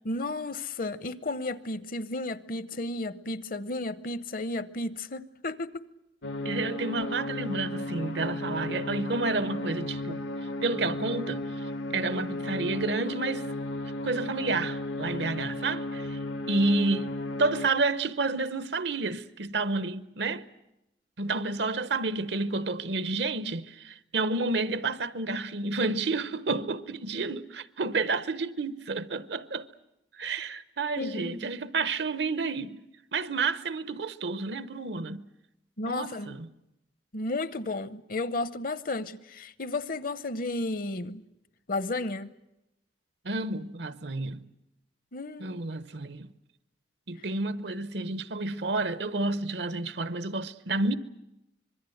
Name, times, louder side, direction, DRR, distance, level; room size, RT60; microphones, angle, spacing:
voice 1, 0.0-5.8 11.9-12.0 31.0-31.5 35.8-36.4 37.1-41.2 41.7-42.3 45.1-45.6, left 2 dB, 50° left, 0.8 m, -33 dB
sound 1, 6.2-17.7, left 1 dB, 80° left, 1.2 m, -34 dB
voice 2, 6.4-10.2 10.6-11.6 11.9-13.5 14.0-16.2 16.5-20.4 21.2-29.7 30.2-32.8 33.1-35.2 35.8-36.5 43.2-44.4 45.4-46.3 47.1-50.9, right 3 dB, 65° right, 0.9 m, -30 dB
26.0 x 22.0 x 7.9 m
head